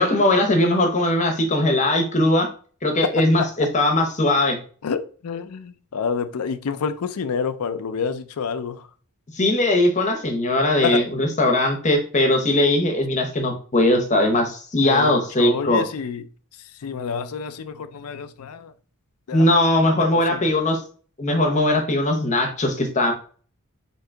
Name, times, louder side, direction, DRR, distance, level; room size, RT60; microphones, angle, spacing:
voice 1, 0.0-2.5 2.8-4.6 9.3-15.8 19.3-20.8 21.2-23.1, left 1 dB, 35° left, 0.8 m, -20 dB
voice 2, 3.0-3.7 4.8-8.9 10.8-11.0 14.8-16.2 16.8-18.7 19.3-19.5 20.1-20.5, left 6 dB, 75° left, 0.4 m, -28 dB
3.7 x 2.9 x 4.4 m
head